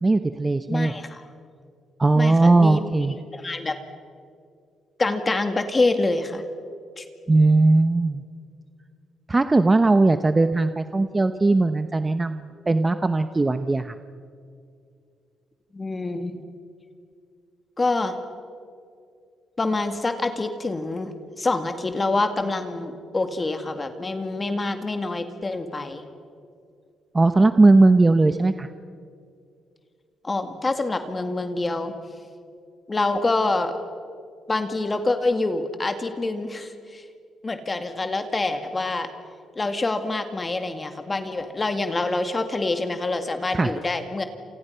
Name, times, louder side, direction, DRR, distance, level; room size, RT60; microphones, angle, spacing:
voice 1, 0.0-0.9 2.0-3.2 7.3-8.2 9.3-14.0 27.1-28.7 43.5-43.7, right 2 dB, 20° right, 10 dB, 0.9 m, -19 dB
voice 2, 0.7-1.2 2.2-2.8 3.3-3.8 5.0-6.4 7.0-7.1 15.7-16.3 17.8-18.2 19.6-21.1 21.4-26.0 30.2-31.9 32.9-33.7 34.5-37.0 37.4-39.1 39.6-44.2, left 2 dB, 25° left, 7 dB, 2.1 m, -26 dB
28.5 x 28.0 x 5.7 m, 2.3 s
cardioid pair, 90°, 0 cm